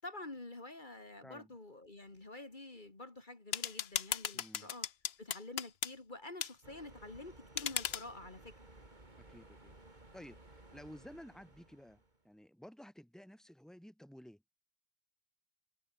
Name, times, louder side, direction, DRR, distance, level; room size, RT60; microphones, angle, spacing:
voice 1, 0.0-4.9 5.2-8.5, left 2 dB, 50° left, 2.9 m, -48 dB
sound 1, 3.5-5.9 6.4-6.5 7.6-8.0, left 9 dB, 75° left, 1.1 m, -37 dB
voice 2, 4.3-4.7 9.2-9.7 10.1-14.4, equal, ahead, 3.4 m, -54 dB
sound 2, 6.6-12.2, right 2 dB, 45° right, 3.7 m, -58 dB
omnidirectional pair, 1.0 m